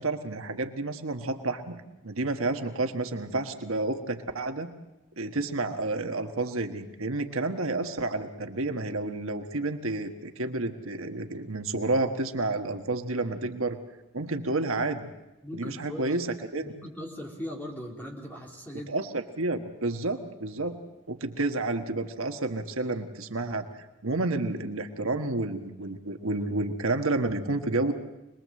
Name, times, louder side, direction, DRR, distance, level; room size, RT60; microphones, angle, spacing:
voice 1, 0.0-4.7 5.2-13.8 14.1-15.1 15.5-16.3 16.5-16.7 18.9-20.8 21.1-27.9, right 2 dB, 70° right, 6 dB, 1.4 m, -30 dB
voice 2, 15.4-16.2 16.6-18.9, equal, 10° left, -1 dB, 3.6 m, -39 dB
26.0 x 20.5 x 7.7 m, 0.96 s
head